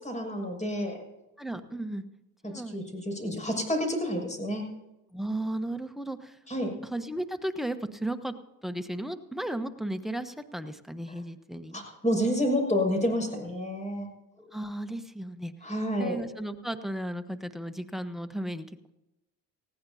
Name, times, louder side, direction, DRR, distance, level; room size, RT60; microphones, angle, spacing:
voice 1, 0.0-1.0 2.4-4.6 6.5-6.8 11.7-14.1 15.6-16.2, equal, 15° left, 2 dB, 6.4 m, -29 dB
voice 2, 1.4-2.0 2.4-2.9 5.1-6.4 6.9-8.3 8.6-11.8 14.4-15.5 16.0-18.7, right 1 dB, ahead, 10 dB, 1.2 m, -35 dB
19.5 x 16.0 x 2.8 m, 0.96 s
supercardioid pair, 65°, 41 cm